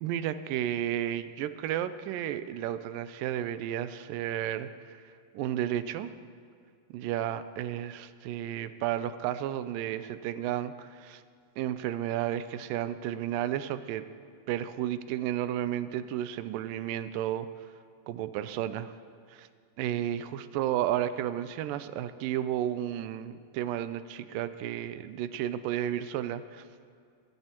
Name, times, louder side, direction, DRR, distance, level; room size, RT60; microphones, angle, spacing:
voice 1, 0.0-4.7 5.3-6.1 6.9-11.2 11.6-14.1 14.5-17.5 18.1-18.9 19.3-19.5 19.8-26.6, right 11 dB, 80° right, 12 dB, 2.1 m, -32 dB
22.5 x 13.0 x 3.0 m, 2.3 s
omnidirectional pair, 4.1 m